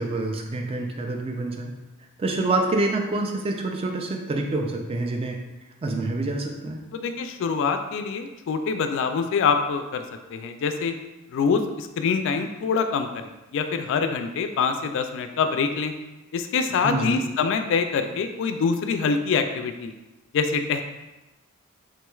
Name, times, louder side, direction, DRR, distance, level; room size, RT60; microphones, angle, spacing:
voice 1, 0.0-1.7 2.2-5.4 5.8-6.8 16.8-17.2, right 2 dB, 30° right, 2 dB, 0.4 m, -27 dB
voice 2, 6.9-10.0 10.3-10.9 11.3-15.9 16.3-19.9 20.3-20.8, left 5 dB, 65° left, 7 dB, 0.3 m, -25 dB
3.6 x 3.1 x 2.3 m, 1.0 s
head